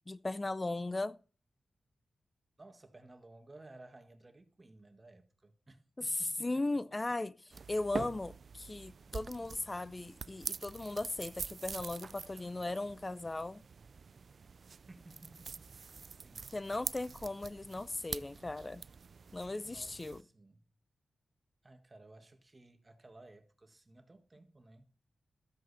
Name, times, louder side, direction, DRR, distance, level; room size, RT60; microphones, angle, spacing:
voice 1, 0.1-1.2 6.0-7.3 7.7-13.6 16.5-18.8 19.3-20.2, left 2 dB, 30° left, 0.5 m, -37 dB
voice 2, 2.6-6.8 14.9-15.7 16.1-16.5 19.7-20.6 21.6-24.9, right 2 dB, 30° right, 1.7 m, -57 dB
sound 1, 7.5-20.2, right 5 dB, 60° right, 0.4 m, -45 dB
13.0 x 7.8 x 4.2 m
cardioid pair, 55°, 0 cm